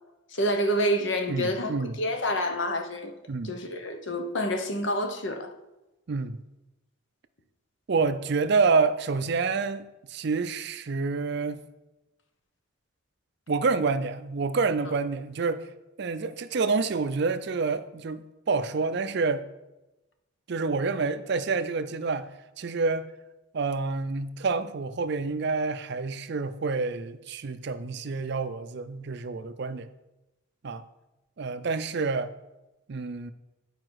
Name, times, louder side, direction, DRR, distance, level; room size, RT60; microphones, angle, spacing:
voice 1, 0.3-3.1 3.4-5.5, equal, 60° left, 6 dB, 1.0 m, -28 dB
voice 2, 1.3-1.9 3.3-3.5 6.1-6.4 7.9-11.6 13.5-15.7 16.0-18.2 18.5-19.4 20.5-22.3 22.6-23.1 23.5-29.9 30.6-30.8 31.4-32.3 32.9-33.3, right 4 dB, 55° right, 12 dB, 0.5 m, -28 dB
9.7 x 5.0 x 4.7 m, 0.98 s
head